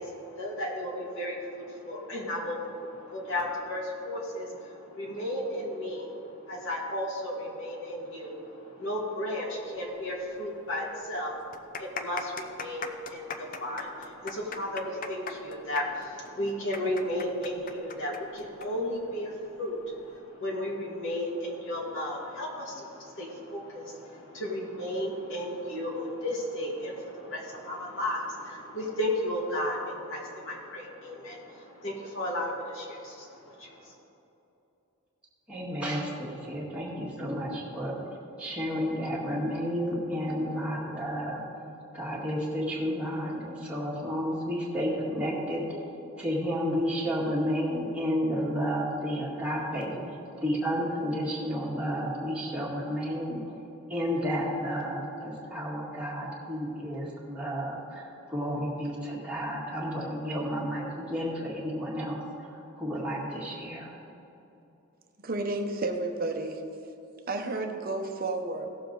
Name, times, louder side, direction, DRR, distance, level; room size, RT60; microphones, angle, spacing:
voice 1, 0.0-33.9, left 1 dB, 60° left, -3 dB, 2.0 m, -34 dB
sound 1, 10.3-10.4 10.7-10.8 11.4-18.7 18.9-19.0 19.8-20.1, left 5 dB, 40° left, 0.6 m, -38 dB
voice 2, 35.5-38.0 38.4-41.4 41.9-45.8 46.2-53.4 53.9-63.9, equal, 5° right, -5 dB, 1.9 m, -31 dB
voice 3, 65.2-66.6 67.3-68.7, right 2 dB, 40° right, 5 dB, 0.9 m, -31 dB
16.5 x 7.2 x 3.9 m, 2.9 s
head